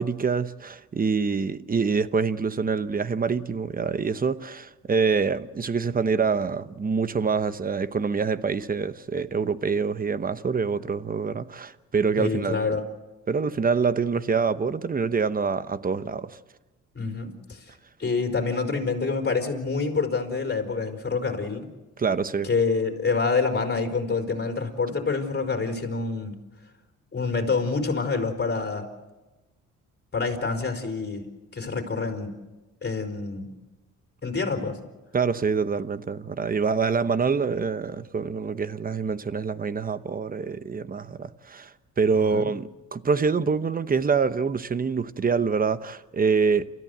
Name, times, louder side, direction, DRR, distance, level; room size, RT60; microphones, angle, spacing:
voice 1, 0.0-12.8 13.3-16.4 22.0-22.5 35.1-41.7 42.0-46.7, right 5 dB, 30° right, 1.0 m, -25 dB
voice 2, 12.2-12.8 16.9-17.6 18.0-21.7 22.4-26.4 27.1-28.9 30.1-32.4 32.8-33.5 34.2-34.8 42.1-42.5, left 4 dB, 35° left, 4.6 m, -27 dB
29.0 x 14.0 x 7.9 m
cardioid pair, 90°, 30 cm